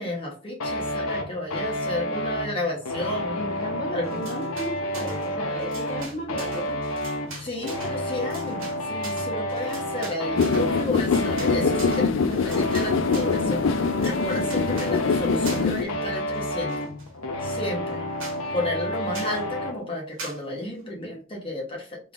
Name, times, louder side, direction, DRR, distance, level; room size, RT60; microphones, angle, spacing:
voice 1, 0.0-3.4 3.9-4.2 7.4-16.7 17.4-18.0 18.5-22.0, left 1 dB, 25° left, -2 dB, 0.9 m, -32 dB
sound 1, 0.6-19.8, equal, 85° left, 0.8 m, -30 dB
voice 2, 3.3-6.8, equal, 45° left, -4 dB, 1.5 m, -34 dB
sound 2, 4.0-5.3 5.6-13.4 13.8-15.0 15.4-15.8 16.1-17.1 17.5-17.6 17.9-18.0 18.2-18.4 19.1-19.4 20.2-20.4, right 3 dB, 70° right, 1.2 m, -41 dB
sound 3, 10.4-15.8, left 5 dB, 65° left, 0.4 m, -24 dB
3.6 x 3.3 x 2.4 m, 0.35 s
head